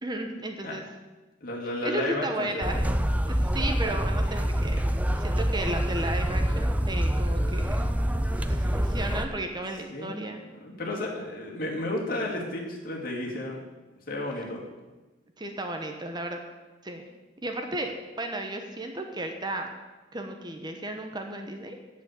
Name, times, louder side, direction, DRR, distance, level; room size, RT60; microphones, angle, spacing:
voice 1, 0.0-0.8 1.8-2.9 3.2-4.8 5.1-7.9 8.4-10.4 15.4-16.4 16.8-17.0 17.4-19.7 20.1-21.8, right 1 dB, 25° right, 4 dB, 1.0 m, -34 dB
voice 2, 1.4-2.5 2.7-2.9 8.2-8.5 9.9-10.2 10.6-13.6 14.1-14.6, left 1 dB, 50° left, -2 dB, 2.6 m, -33 dB
sound 1, 2.6-9.3, equal, 10° right, 0.5 m, -26 dB
8.3 x 7.5 x 8.4 m, 1.2 s
head